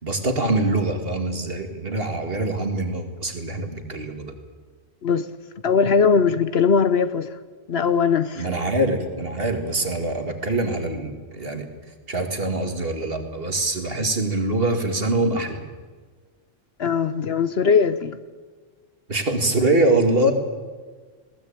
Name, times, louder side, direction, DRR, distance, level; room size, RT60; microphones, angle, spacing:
voice 1, 0.0-4.3 8.4-11.7 12.1-15.6 19.1-20.3, right 2 dB, 50° right, 5 dB, 2.5 m, -24 dB
voice 2, 5.6-7.3 7.7-8.5 16.8-18.2, left 6 dB, 60° left, 13 dB, 1.0 m, -20 dB
21.0 x 17.0 x 8.8 m, 1.4 s
omnidirectional pair, 1.3 m